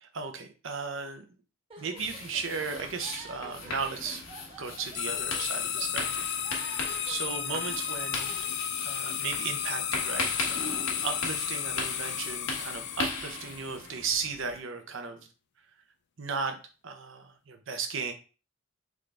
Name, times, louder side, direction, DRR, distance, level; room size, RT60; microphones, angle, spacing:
voice 1, 0.0-1.2 1.8-4.2 4.6-6.3 6.6-8.4 8.8-15.3 16.2-16.6 16.8-18.1, right 5 dB, 70° right, 6 dB, 0.8 m, -36 dB
sound 1, 1.7-8.5, right 2 dB, 30° right, 1.3 m, -50 dB
sound 2, 2.0-14.6, left 3 dB, 85° left, 1.3 m, -38 dB
sound 3, 4.9-13.9, left 9 dB, 60° left, 0.5 m, -33 dB
3.7 x 3.4 x 3.7 m, 0.34 s
head